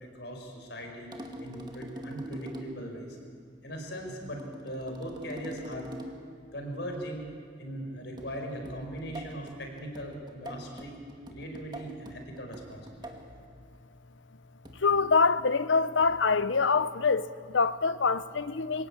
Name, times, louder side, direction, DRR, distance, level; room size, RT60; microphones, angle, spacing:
voice 1, 0.1-3.2 3.6-5.9 6.5-7.2 7.6-11.0 11.3-13.1, equal, 65° left, 5.0 m, -39 dB
sound 1, 1.1-2.9 4.3-6.3 8.2-13.3 14.6-15.0 16.0-16.3, right 1 dB, 25° right, 2.0 m, -44 dB
voice 2, 14.8-18.9, left 4 dB, 85° left, 0.8 m, -25 dB
26.5 x 17.5 x 8.6 m
head